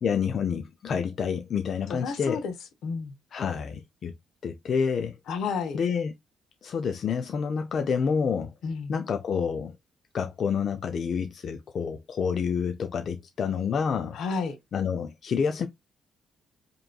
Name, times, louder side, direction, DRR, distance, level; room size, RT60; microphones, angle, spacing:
voice 1, 0.0-2.4 3.3-4.1 4.4-5.2 5.7-6.1 6.6-8.5 8.9-9.7 10.1-14.2 14.7-15.7, left 6 dB, 55° left, 0.4 m, -28 dB
voice 2, 1.9-2.5 2.8-3.1 5.3-5.8 8.6-8.9 14.1-14.6, left 5 dB, 75° left, 0.9 m, -31 dB
5.1 x 3.0 x 2.3 m
cardioid pair, 90°, 0 cm